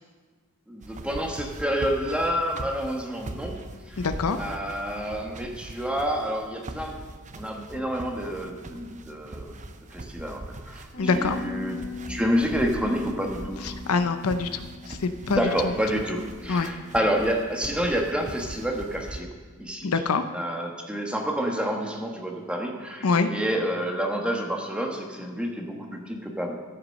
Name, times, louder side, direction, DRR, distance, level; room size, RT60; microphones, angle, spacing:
voice 1, 0.7-4.1 4.3-7.1 7.3-9.5 9.9-13.8 15.3-19.3 19.6-19.9 20.3-26.6, equal, 5° right, 1 dB, 1.2 m, -29 dB
sound 1, 0.8-19.2, right 2 dB, 35° right, 0.7 m, -41 dB
voice 2, 4.0-4.4 11.0-11.4 13.6-15.4 16.5-16.7 19.8-20.2 23.0-23.3, left 4 dB, 75° left, 10 dB, 0.6 m, -25 dB
Bass guitar, 10.9-17.2, left 4 dB, 55° left, 2.6 m, -40 dB
14.0 x 5.9 x 6.4 m, 1.4 s
head